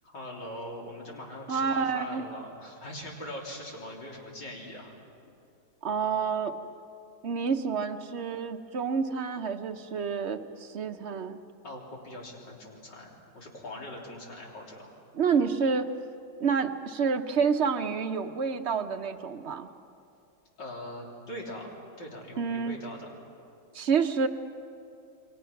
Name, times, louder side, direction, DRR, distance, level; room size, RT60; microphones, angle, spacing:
voice 1, 0.0-5.0 11.6-15.0 20.6-21.7 22.0-23.1, left 1 dB, 75° left, -2 dB, 4.0 m, -42 dB
voice 2, 1.5-2.2 5.8-6.5 7.2-11.4 15.1-15.9 16.4-19.7 22.4-22.8 23.7-24.3, right 5 dB, 50° right, 7 dB, 0.9 m, -28 dB
29.0 x 22.5 x 5.9 m, 2.5 s
omnidirectional pair, 1.9 m